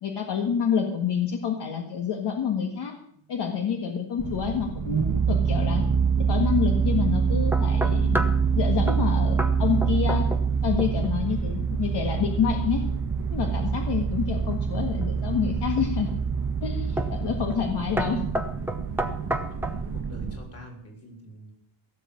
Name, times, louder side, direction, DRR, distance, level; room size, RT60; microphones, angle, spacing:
voice 1, 0.0-3.0 3.3-5.8 6.3-8.2 8.5-10.3 10.6-12.8 13.3-16.1 16.6-18.2, left 7 dB, 55° left, 3 dB, 1.8 m, -28 dB
sound 1, 4.2-20.4, right 6 dB, 40° right, 1.3 m, -26 dB
sound 2, 7.5-8.4 8.9-9.1 9.4-9.6 9.8-10.5 10.8-11.2 14.5-15.2 15.8-16.2 17.0-17.2 17.5-17.7 18.0-19.8, right 1 dB, 5° right, 0.9 m, -30 dB
voice 2, 19.4-21.5, right 1 dB, 30° left, 2 dB, 3.6 m, -46 dB
17.0 x 7.6 x 8.5 m, 0.66 s
cardioid pair, 175°, 48 cm